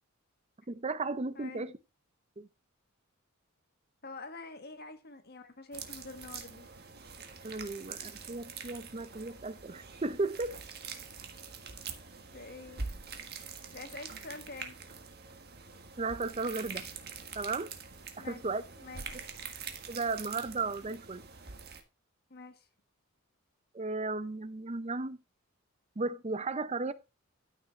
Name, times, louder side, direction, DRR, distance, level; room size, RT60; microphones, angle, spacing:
voice 1, 0.7-1.8 2.4-2.5 7.4-10.5 16.0-16.9 17.4-17.7 18.2-18.6 19.9-21.2 23.7-25.2 26.0-26.9, right 3 dB, 30° right, 0.7 m, -35 dB
voice 2, 4.0-6.7 12.3-12.9 13.7-14.8 18.2-18.4 18.8-19.2 22.3-22.7, left 3 dB, 45° left, 1.8 m, -46 dB
sound 1, 5.7-21.8, right 5 dB, 50° right, 1.6 m, -45 dB
13.0 x 6.4 x 3.3 m
head